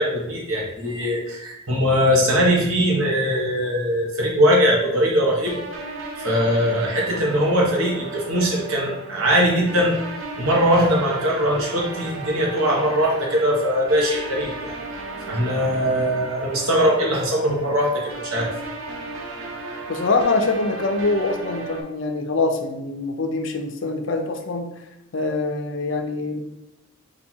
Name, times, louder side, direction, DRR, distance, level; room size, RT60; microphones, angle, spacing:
voice 1, 0.0-5.6 6.2-10.0 10.4-14.7 15.3-18.5, equal, 85° right, -2 dB, 1.2 m, -21 dB
sound 1, 5.5-21.8, right 2 dB, 65° right, 0.6 m, -35 dB
voice 2, 19.9-24.7 25.1-26.4, left 3 dB, 60° left, 5 dB, 0.6 m, -24 dB
4.1 x 2.7 x 4.4 m, 0.90 s
head